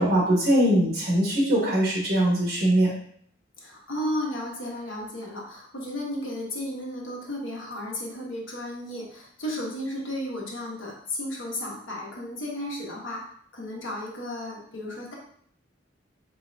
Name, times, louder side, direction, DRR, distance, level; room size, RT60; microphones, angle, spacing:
voice 1, 0.0-2.9, right 1 dB, 50° right, -4 dB, 1.4 m, -21 dB
voice 2, 3.6-13.2 13.5-15.1, left 1 dB, 80° left, -3 dB, 1.2 m, -34 dB
4.1 x 3.7 x 2.6 m, 0.63 s
head